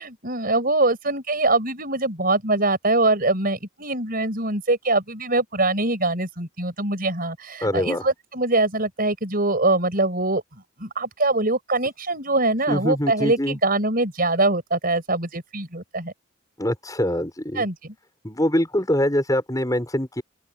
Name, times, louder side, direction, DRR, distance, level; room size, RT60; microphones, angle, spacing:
voice 1, 0.0-10.4 10.8-16.1 17.5-17.7, right 2 dB, 45° right, 5.8 m, -23 dB
voice 2, 7.6-8.0 12.7-13.6 16.6-17.6 18.2-20.2, left 1 dB, 15° left, 6.3 m, -24 dB
open air
head